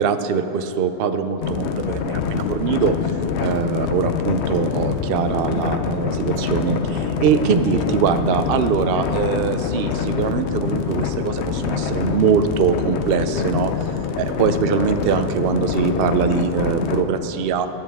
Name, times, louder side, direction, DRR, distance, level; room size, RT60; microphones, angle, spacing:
voice 1, 0.0-3.1 3.4-13.9 14.2-17.7, right 6 dB, 65° right, 9 dB, 0.8 m, -22 dB
sound 1, 1.4-17.0, left 6 dB, 85° left, 0.9 m, -25 dB
14.5 x 11.0 x 3.5 m, 3.0 s
omnidirectional pair, 1.1 m